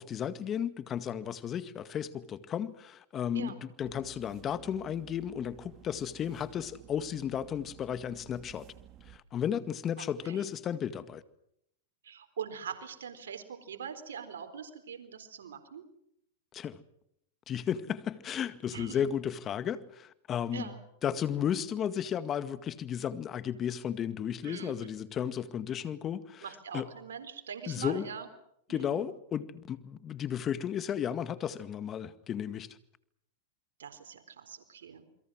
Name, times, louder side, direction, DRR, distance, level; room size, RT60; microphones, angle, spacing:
voice 1, 0.0-8.7 9.1-11.2 16.5-16.8 17.5-20.7 21.0-26.5 26.7-26.9 27.7-28.1 28.7-32.8, left 9 dB, 30° left, 1.9 m, -34 dB
sound 1, 3.8-9.2, right 13 dB, 40° right, 2.2 m, -54 dB
voice 2, 12.0-15.8 18.7-19.0 20.5-20.8 24.4-24.9 26.4-28.3 28.7-29.0 33.8-35.1, right 7 dB, 90° right, 3.9 m, -42 dB
29.0 x 22.5 x 6.3 m
hypercardioid pair, 130°, 0 cm